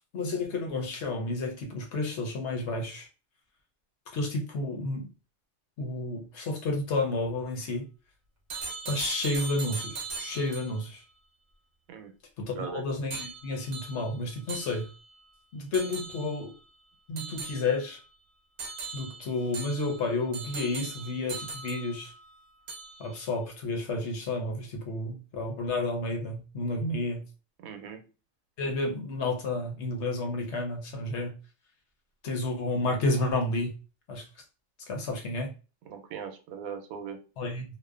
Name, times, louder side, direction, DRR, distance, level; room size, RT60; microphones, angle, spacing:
voice 1, 0.1-3.1 4.1-5.0 5.8-7.8 8.8-11.0 12.6-14.8 15.5-16.5 17.1-18.0 18.9-22.1 23.0-27.2 28.6-31.3 32.2-33.7 34.1-34.2 34.9-35.5 37.4-37.6, left 2 dB, 60° left, 0.9 m, -31 dB
sound 1, 8.5-10.9 13.1-15.2 15.7-16.5 17.2-18.1 18.6-22.3 22.7-23.2, right 4 dB, 60° right, 0.8 m, -40 dB
voice 2, 12.5-12.8 27.6-28.0 35.8-37.2, right 7 dB, 85° right, 1.0 m, -39 dB
2.7 x 2.1 x 2.3 m
omnidirectional pair, 1.4 m